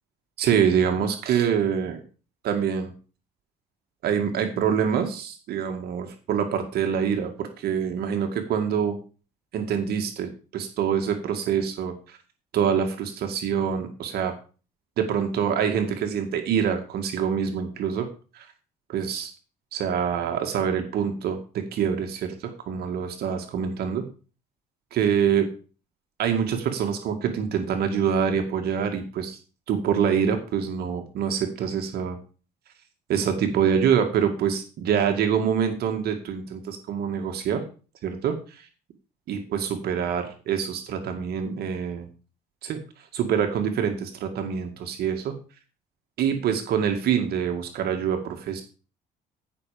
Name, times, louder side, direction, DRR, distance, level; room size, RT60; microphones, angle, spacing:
voice 1, 0.4-2.0 2.4-2.9 4.0-9.0 9.5-12.2 12.5-14.3 15.0-18.1 18.3-18.5 18.9-19.3 19.7-24.0 24.9-25.5 26.2-29.4 29.7-32.2 33.1-37.6 38.0-38.7 39.3-42.1 42.6-42.8 43.1-45.3 46.2-48.6, right 7 dB, 70° right, 5 dB, 2.1 m, -25 dB
15.0 x 6.2 x 5.2 m, 0.36 s
cardioid pair, 110°, 17 cm